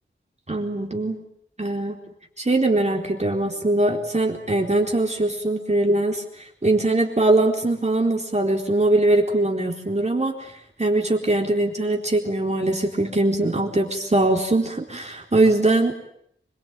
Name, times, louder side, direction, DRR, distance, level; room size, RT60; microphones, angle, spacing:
voice 1, 0.5-1.2 1.6-2.0 2.4-6.2 6.6-10.3 10.8-15.9, right 2 dB, 35° right, 2 dB, 4.1 m, -21 dB
27.0 x 22.5 x 9.2 m, 0.70 s
wide cardioid pair, 85°, 21 cm